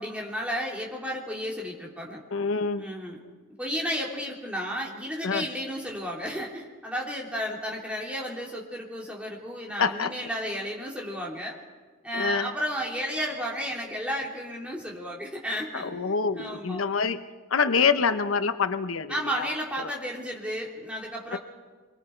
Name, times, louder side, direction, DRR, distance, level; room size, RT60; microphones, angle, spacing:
voice 1, 0.0-2.2 2.8-3.2 3.6-11.6 12.0-16.8 19.1-21.4, equal, 5° right, -2 dB, 3.0 m, -33 dB
voice 2, 2.3-2.9 5.2-5.5 9.8-10.1 12.1-12.5 15.7-17.2 17.5-19.5 19.8-19.9 21.3-21.4, left 5 dB, 80° left, 10 dB, 0.8 m, -26 dB
26.5 x 23.0 x 4.5 m, 1.4 s
head